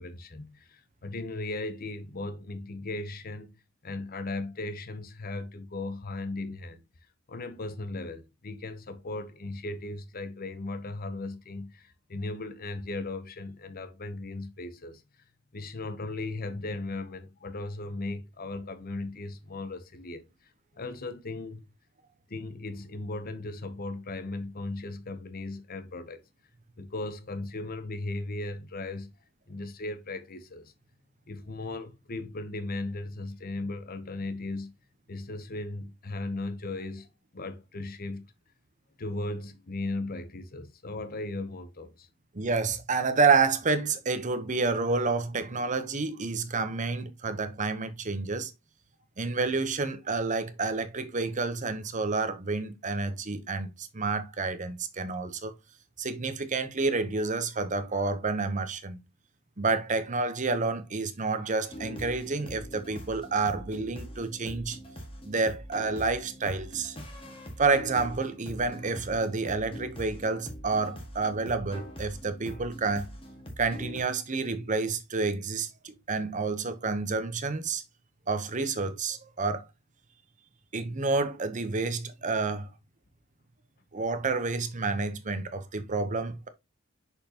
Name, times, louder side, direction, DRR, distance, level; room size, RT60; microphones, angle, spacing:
voice 1, 0.0-3.5 3.8-6.8 7.3-15.0 15.5-20.2 20.8-21.7 22.3-26.2 26.8-29.1 29.5-30.7 31.3-34.7 35.1-37.1 37.3-38.3 39.0-42.1, left 2 dB, 45° left, 0.8 m, -37 dB
voice 2, 42.3-48.5 49.2-55.5 56.0-59.0 59.6-64.8 65.2-67.0 67.6-73.1 73.6-77.8 78.3-79.6 80.7-82.7 83.9-86.5, right 4 dB, 35° right, 0.9 m, -29 dB
sound 1, 61.7-74.0, equal, 25° left, 1.8 m, -43 dB
6.3 x 5.4 x 2.9 m
head